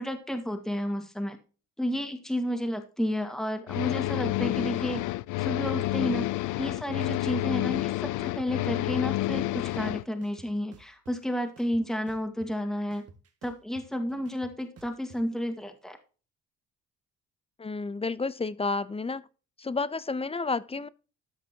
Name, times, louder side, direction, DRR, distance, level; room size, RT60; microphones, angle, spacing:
voice 1, 0.0-1.4 1.8-5.1 5.4-6.3 6.6-13.1 13.4-16.0, equal, ahead, 1.9 m, -31 dB
sound 1, 3.7-10.0, left 17 dB, 80° left, 0.5 m, -29 dB
sound 2, 9.7-9.8 10.2-11.2 11.6-12.6 12.9-15.2, right 4 dB, 50° right, 1.8 m, -53 dB
voice 2, 17.6-19.3 19.6-20.9, left 3 dB, 20° left, 0.6 m, -31 dB
13.5 x 5.9 x 2.8 m
cardioid pair, 90°, 30 cm